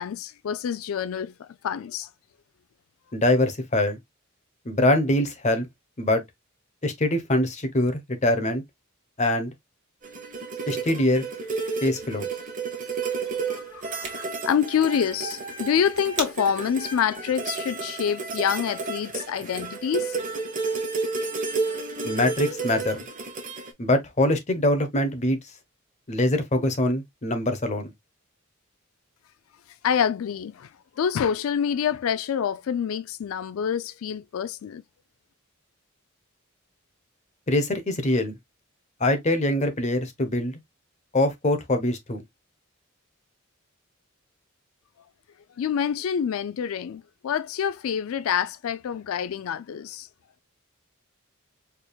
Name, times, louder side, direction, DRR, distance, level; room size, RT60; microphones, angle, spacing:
voice 1, 0.0-2.1 13.5-20.2 29.8-30.7 31.0-34.8 45.6-50.1, left 8 dB, 70° left, 0.3 m, -27 dB
voice 2, 3.1-4.0 4.7-5.7 6.0-6.2 6.8-8.6 9.2-9.5 10.7-11.2 11.8-12.3 22.0-23.0 23.8-25.4 26.1-27.9 37.5-38.3 39.0-40.6 41.1-42.2, left 1 dB, 35° left, 0.9 m, -23 dB
sound 1, 10.0-23.7, right 4 dB, 40° right, 1.2 m, -31 dB
sound 2, 13.8-18.9, right 5 dB, 55° right, 1.5 m, -42 dB
4.6 x 3.4 x 2.2 m
head